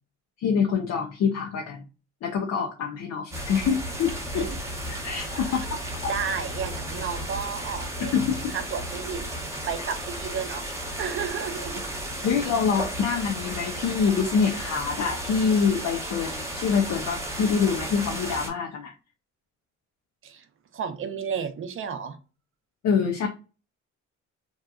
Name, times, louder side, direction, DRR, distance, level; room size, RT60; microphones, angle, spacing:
voice 1, 0.4-1.8 2.2-4.4 5.0-5.7 6.0-6.1 8.0-8.6 12.2-18.9 22.8-23.3, left 6 dB, 60° left, 2 dB, 0.5 m, -25 dB
sound 1, 3.3-18.5, right 1 dB, 10° right, 0.8 m, -34 dB
voice 2, 6.1-8.1 8.5-10.6 11.0-11.9 20.2-20.5 20.7-22.2, right 6 dB, 45° right, 9 dB, 0.5 m, -32 dB
2.8 x 2.3 x 2.3 m, 0.34 s
cardioid pair, 90°, 30 cm